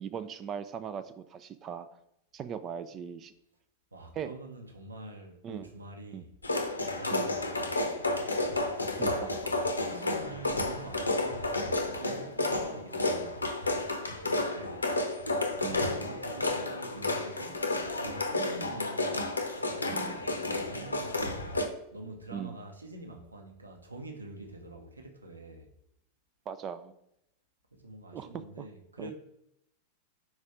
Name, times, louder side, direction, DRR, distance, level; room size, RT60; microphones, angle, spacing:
voice 1, 0.0-1.9 2.3-3.3 4.2-4.3 5.4-5.7 6.1-6.2 7.1-7.3 9.0-9.3 15.6-15.8 19.9-20.2 22.3-22.6 26.5-26.9 28.1-28.7 29.0-29.1, right 8 dB, 30° right, 0.3 m, -39 dB
voice 2, 3.9-6.3 6.9-9.4 9.8-14.9 15.5-19.2 19.6-21.5 21.9-25.7 27.7-29.1, right 2 dB, 80° right, 0.9 m, -46 dB
sound 1, 6.4-21.7, left 2 dB, 80° left, 0.7 m, -31 dB
4.8 x 4.1 x 4.8 m
figure-of-eight pair, 90°, 0 cm